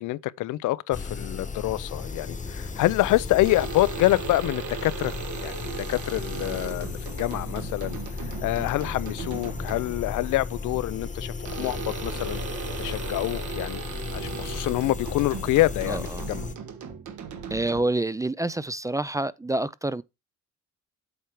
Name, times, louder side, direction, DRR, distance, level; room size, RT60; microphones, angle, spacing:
voice 1, 0.0-5.1 5.4-5.5 5.9-8.0 8.4-12.4 12.8-13.8 14.1-16.4, left 17 dB, 80° left, 0.5 m, -26 dB
sound 1, 0.9-16.5, left 4 dB, 25° left, 1.0 m, -35 dB
sound 2, 3.4-10.1 11.4-18.1, right 6 dB, 75° right, 1.5 m, -37 dB
voice 2, 15.9-16.3 17.5-20.0, right 2 dB, 10° right, 0.4 m, -28 dB
8.1 x 4.6 x 4.5 m
cardioid pair, 90°, 30 cm